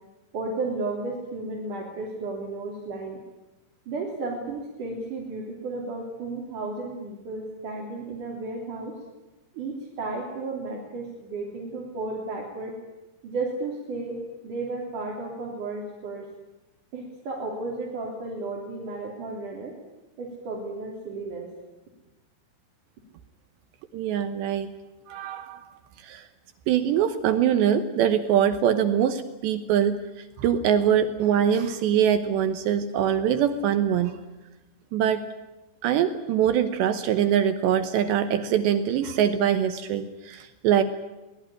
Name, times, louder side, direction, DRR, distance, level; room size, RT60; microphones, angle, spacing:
voice 1, 0.3-3.2 3.9-9.0 9.5-12.7 13.2-14.2 14.4-16.3 16.9-19.7 20.2-21.5, right 3 dB, 40° right, -3 dB, 4.2 m, -33 dB
voice 2, 23.9-24.7 25.1-25.7 26.0-26.2 26.7-34.2 34.9-35.2 35.8-40.8, right 9 dB, 70° right, 9 dB, 2.9 m, -23 dB
23.0 x 19.0 x 10.0 m, 1.1 s
omnidirectional pair, 5.9 m